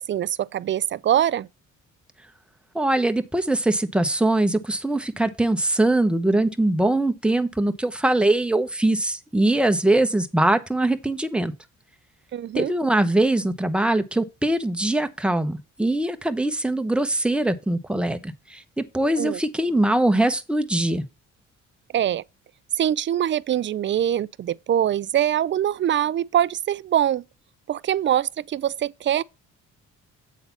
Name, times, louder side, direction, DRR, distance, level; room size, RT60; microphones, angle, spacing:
voice 1, 0.0-1.5 12.3-12.7 19.2-19.4 21.9-22.2 22.8-27.2 27.7-29.2, right 11 dB, 40° right, 0.4 m, -23 dB
voice 2, 2.7-11.5 12.5-21.0, right 1 dB, 5° right, 0.9 m, -22 dB
8.3 x 4.0 x 6.9 m
cardioid pair, 90°, 30 cm